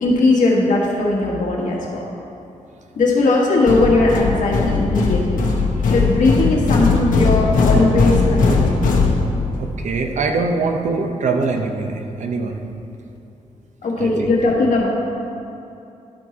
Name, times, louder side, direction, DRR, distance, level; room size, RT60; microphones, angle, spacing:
voice 1, 0.0-2.0 2.9-5.4 5.9-8.7 13.8-14.9, left 2 dB, 70° left, -3 dB, 1.5 m, -18 dB
sound 1, 3.7-9.7, left 3 dB, 85° left, 0.9 m, -18 dB
voice 2, 9.6-12.6 14.0-14.3, right 4 dB, 65° right, 4 dB, 0.7 m, -23 dB
11.0 x 4.6 x 4.2 m, 2.7 s
cardioid pair, 95°, 13 cm